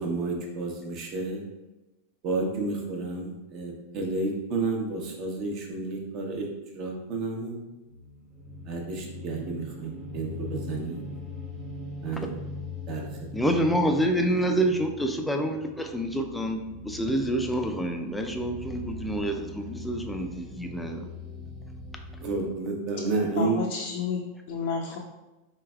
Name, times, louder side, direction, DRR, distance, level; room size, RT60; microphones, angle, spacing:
voice 1, 0.0-1.4 2.2-6.5 6.7-7.6 8.7-11.0 12.0-12.3 12.9-13.1 22.2-23.6, right 3 dB, 40° right, 0 dB, 0.8 m, -31 dB
sound 1, 7.8-22.5, left 2 dB, 15° right, 1.0 m, -41 dB
voice 2, 13.3-21.1, right 1 dB, 5° left, 4 dB, 0.3 m, -27 dB
voice 3, 23.4-25.0, left 5 dB, 70° left, -1 dB, 0.5 m, -31 dB
4.1 x 3.2 x 2.3 m, 1.0 s
supercardioid pair, 140°, 0 cm